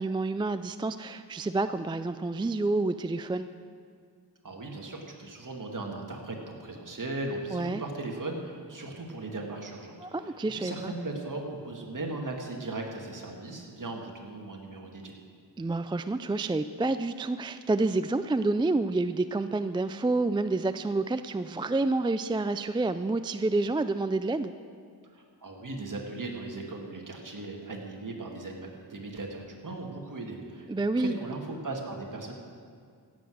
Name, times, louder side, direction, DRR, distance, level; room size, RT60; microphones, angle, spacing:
voice 1, 0.0-3.5 7.5-7.8 10.0-10.9 15.6-24.5 30.7-31.2, right 2 dB, 15° right, 11 dB, 0.3 m, -28 dB
voice 2, 4.4-15.2 25.1-32.3, right 2 dB, 50° right, 1 dB, 2.2 m, -38 dB
16.5 x 7.9 x 6.4 m, 2.1 s
wide cardioid pair, 65°, 41 cm